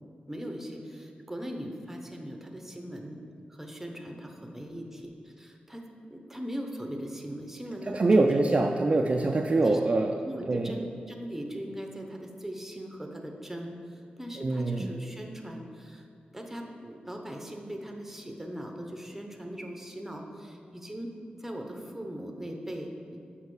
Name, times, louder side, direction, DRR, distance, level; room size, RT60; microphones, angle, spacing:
voice 1, 0.3-3.2 3.5-8.5 9.5-9.8 10.2-16.0 16.3-21.1 21.4-23.2, equal, 10° right, 3 dB, 0.8 m, -40 dB
voice 2, 7.9-10.1 10.5-10.7 14.4-14.9, right 2 dB, 35° right, 2 dB, 0.4 m, -24 dB
6.5 x 5.4 x 4.8 m, 2.3 s
wide cardioid pair, 90°, 3 cm